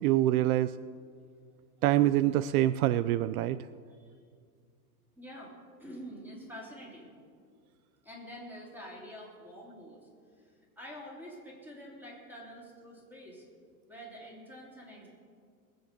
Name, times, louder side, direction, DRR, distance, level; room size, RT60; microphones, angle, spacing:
voice 1, 0.0-0.7 1.8-3.6, right 14 dB, 70° right, 15 dB, 0.6 m, -25 dB
voice 2, 5.2-5.5 5.8-7.1 8.0-10.0 10.4-13.4 13.9-15.1, equal, 5° right, -3 dB, 3.3 m, -47 dB
21.0 x 7.9 x 6.8 m, 2.1 s
supercardioid pair, 155°, 45 cm